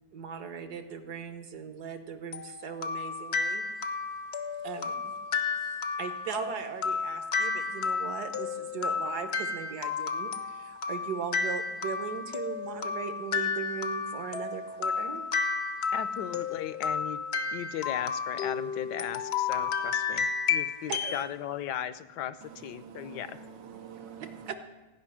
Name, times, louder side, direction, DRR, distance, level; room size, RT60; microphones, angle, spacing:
voice 1, 0.1-3.6 4.6-5.1 6.0-15.2 20.9-21.2 24.2-24.5, right 7 dB, 65° right, 9 dB, 1.6 m, -38 dB
sound 1, 2.3-21.2, left 5 dB, 55° left, 0.7 m, -32 dB
voice 2, 15.9-17.2 17.5-23.4, left 10 dB, 70° left, 14 dB, 1.2 m, -37 dB
voice 3, 22.4-24.5, right 7 dB, 80° right, 6 dB, 1.8 m, -46 dB
16.0 x 5.7 x 9.9 m, 1.1 s
omnidirectional pair, 1.9 m